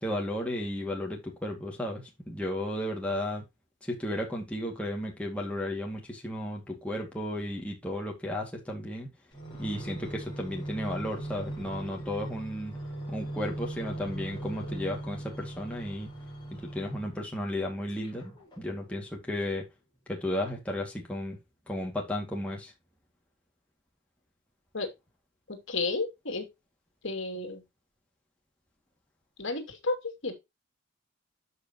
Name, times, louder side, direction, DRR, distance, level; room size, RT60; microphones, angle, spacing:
voice 1, 0.0-3.4 3.9-9.1 9.6-12.7 13.1-16.1 16.5-19.6 20.1-21.4 21.7-22.7, left 1 dB, 5° left, 2.3 m, -34 dB
sound 1, 9.3-17.3 17.9-19.2 19.8-19.9, right 1 dB, 20° left, 4.7 m, -40 dB
voice 2, 25.5-26.5 27.0-27.6 29.4-30.3, left 3 dB, 65° left, 2.6 m, -32 dB
12.0 x 5.3 x 3.0 m
head